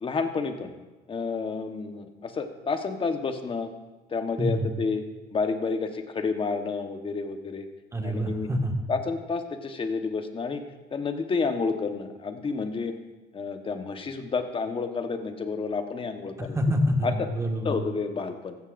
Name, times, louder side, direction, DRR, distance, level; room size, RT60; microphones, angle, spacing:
voice 1, 0.0-0.7 1.1-3.7 4.1-5.0 5.3-7.7 8.0-8.5 8.9-10.6 10.9-12.9 13.3-16.6 17.0-17.1 17.6-18.6, left 4 dB, 30° left, 6 dB, 1.2 m, -30 dB
voice 2, 7.9-8.9 16.4-17.7, equal, 15° right, 2 dB, 1.7 m, -26 dB
15.5 x 14.0 x 2.6 m, 1.2 s
cardioid pair, 110°, 17 cm